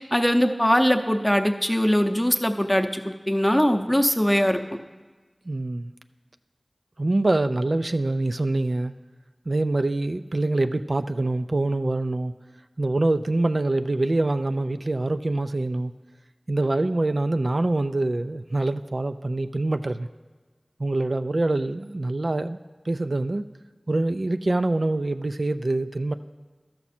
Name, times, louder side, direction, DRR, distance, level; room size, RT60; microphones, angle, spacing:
voice 1, 0.1-4.6, equal, 10° left, 5 dB, 0.6 m, -21 dB
voice 2, 5.5-5.9 7.0-8.9 9.5-12.3 12.8-15.9 16.5-20.1 20.8-22.6 22.9-23.4 23.9-26.1, right 2 dB, 60° right, 9 dB, 0.3 m, -25 dB
13.0 x 5.9 x 4.2 m, 1.3 s
wide cardioid pair, 40°, 0 cm